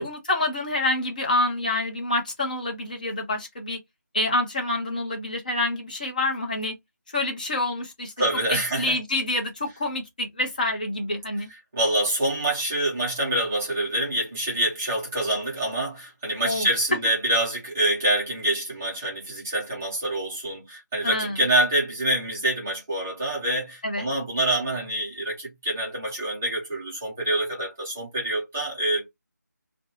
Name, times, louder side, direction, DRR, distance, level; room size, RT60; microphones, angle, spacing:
voice 1, 0.0-3.8 4.1-6.7 7.1-8.1 8.5-11.5 16.4-16.7 21.0-21.4 23.8-24.1, left 2 dB, 25° left, 0.7 m, -27 dB
voice 2, 8.2-9.0 11.7-29.1, right 1 dB, 5° right, 0.5 m, -26 dB
2.6 x 2.2 x 2.8 m
figure-of-eight pair, 170°, 10 cm